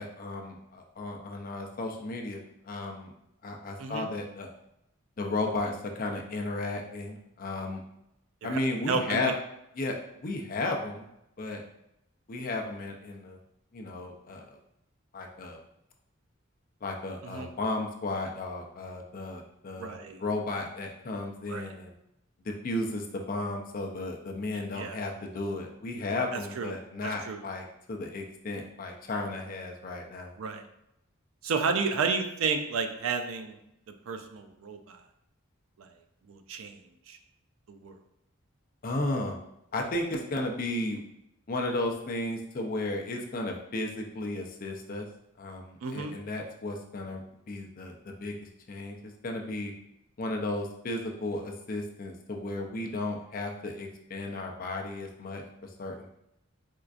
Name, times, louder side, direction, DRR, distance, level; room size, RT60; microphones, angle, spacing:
voice 1, 0.0-3.1 3.4-4.5 5.2-7.8 8.4-9.3 9.8-11.0 11.4-11.6 12.3-13.4 13.7-14.6 15.1-15.6 16.8-21.9 22.4-30.3 38.8-39.4 39.7-41.0 41.5-45.1 45.4-47.2 47.5-48.3 48.7-49.0 49.2-49.7 50.2-55.4 55.8-56.2, left 2 dB, 40° left, 2 dB, 0.4 m, -34 dB
voice 2, 8.9-9.2 17.2-17.5 19.8-20.2 21.5-21.7 24.5-25.0 26.3-26.7 27.0-27.4 30.4-30.6 31.4-33.6 34.1-35.0 35.8-35.9 36.3-36.8 37.1-37.2 37.7-38.0 45.8-46.2, right 5 dB, 75° right, 6 dB, 0.4 m, -32 dB
4.4 x 2.4 x 2.4 m, 0.82 s
head